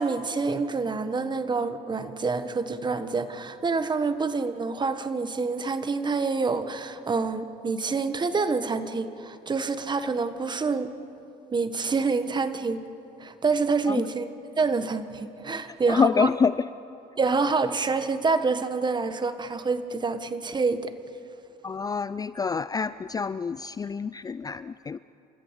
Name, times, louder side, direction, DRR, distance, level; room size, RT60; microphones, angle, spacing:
voice 1, 0.0-10.9 11.5-12.8 13.2-14.3 14.6-16.3 17.2-20.9, right 4 dB, 25° right, 10 dB, 1.4 m, -27 dB
voice 2, 15.9-16.6 21.6-25.0, left 5 dB, 20° left, 15 dB, 0.4 m, -26 dB
29.5 x 14.0 x 8.2 m, 2.8 s
cardioid pair, 110°, 17 cm